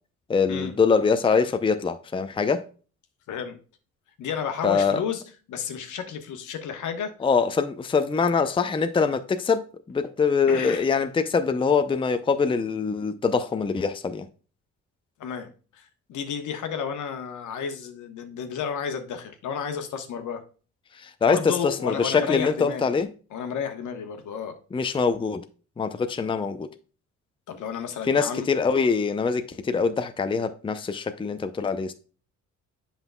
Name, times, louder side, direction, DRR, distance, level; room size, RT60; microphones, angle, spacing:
voice 1, 0.3-2.7 4.6-5.0 7.2-14.3 21.0-23.1 24.7-25.4 25.8-26.7 28.1-31.9, left 5 dB, 15° left, 0.5 m, -24 dB
voice 2, 3.3-3.6 4.2-5.2 5.5-7.1 10.5-10.9 15.2-20.4 21.2-23.0 23.3-24.6 27.5-28.5, left 7 dB, 75° left, 1.1 m, -32 dB
7.9 x 5.6 x 2.2 m
cardioid pair, 90°, 30 cm